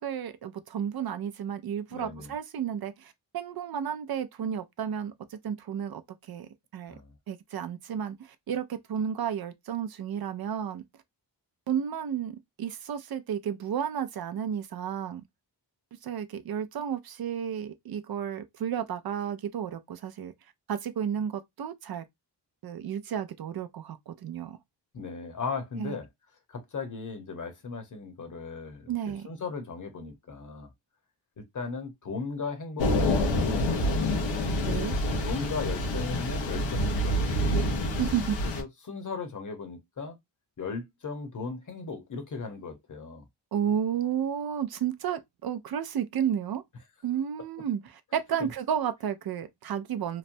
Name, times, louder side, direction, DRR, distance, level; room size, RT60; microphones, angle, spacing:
voice 1, 0.0-6.0 6.3-6.9 7.3-10.8 11.7-15.2 16.0-20.3 20.7-22.0 22.6-24.6 25.8-25.9 28.9-29.3 34.6-35.0 38.0-38.4 43.5-46.6 47.0-50.2, right 8 dB, 60° right, 0.5 m, -32 dB
voice 2, 1.9-2.3 6.9-7.1 24.9-26.1 26.5-30.7 31.4-34.3 35.2-37.5 38.4-40.2 40.6-43.2 48.4-48.5, left 4 dB, 45° left, 1.0 m, -37 dB
Thunder / Rain, 32.8-38.6, left 1 dB, 90° left, 0.9 m, -27 dB
3.1 x 2.1 x 2.6 m
wide cardioid pair, 105°, 44 cm